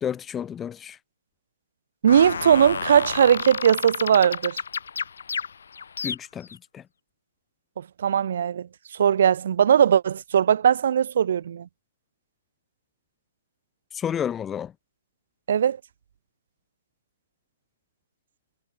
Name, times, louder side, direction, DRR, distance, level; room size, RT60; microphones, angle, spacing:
voice 1, 0.0-1.0 6.0-6.5 6.7-6.8 13.9-14.7, left 8 dB, 15° left, 0.6 m, -30 dB
voice 2, 2.0-4.6 7.8-8.7 9.0-11.7 15.5-15.8, right 8 dB, 60° right, 1.2 m, -19 dB
sound 1, 2.1-6.5, left 6 dB, 75° left, 2.1 m, -31 dB
hypercardioid pair, 150°, 0 cm